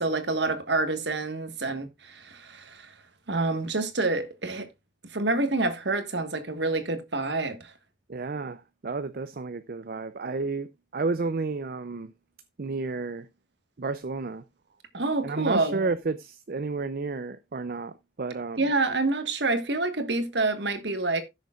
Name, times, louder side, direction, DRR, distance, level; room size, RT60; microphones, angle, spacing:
voice 1, 0.0-2.9 3.3-4.7 5.1-7.7 14.9-15.8 18.6-21.2, right 3 dB, 70° right, 1.5 m, -27 dB
voice 2, 8.1-12.1 12.6-13.3 13.8-14.4 15.2-18.6, right 3 dB, 55° right, 0.5 m, -31 dB
16.0 x 6.6 x 2.4 m
head